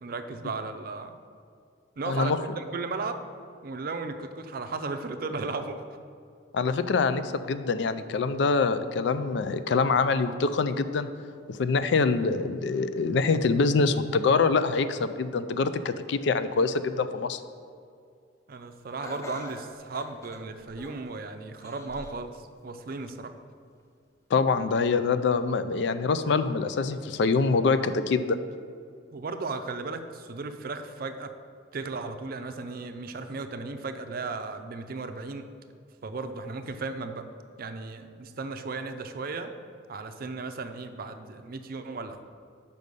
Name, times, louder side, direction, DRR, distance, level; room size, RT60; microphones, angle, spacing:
voice 1, 0.0-1.1 2.0-3.2 3.6-5.8 18.5-23.3 29.1-31.3 31.7-35.5 36.0-37.3 37.6-39.5 39.9-42.2, right 3 dB, 50° right, 8 dB, 0.5 m, -35 dB
voice 2, 2.1-2.4 6.5-11.1 11.5-17.4 24.3-28.4, left 4 dB, 65° left, 12 dB, 0.4 m, -25 dB
Laughter, 19.0-21.1 21.6-22.2 22.7-22.8 23.8-23.9, equal, 15° left, 0.6 m, -44 dB
6.5 x 5.4 x 5.3 m, 2.2 s
head